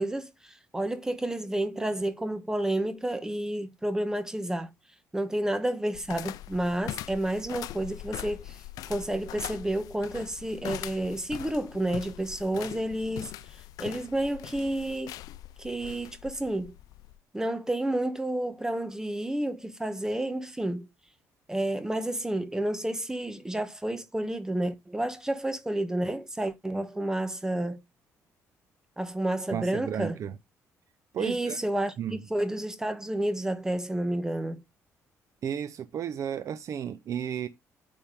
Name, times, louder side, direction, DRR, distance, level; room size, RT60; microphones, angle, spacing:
voice 1, 0.0-4.7 5.1-8.6 8.9-13.3 13.8-15.1 15.6-16.7 17.3-20.9 21.5-27.8 29.0-30.2 31.2-34.6, right 1 dB, 10° right, 1.3 m, -30 dB
sound 1, 5.9-17.2, left 14 dB, 80° left, 0.4 m, -42 dB
voice 2, 29.5-30.3 31.1-31.6 32.0-32.2 35.4-37.5, right 9 dB, 60° right, 0.7 m, -33 dB
8.8 x 3.7 x 5.0 m
cardioid pair, 95°, 6 cm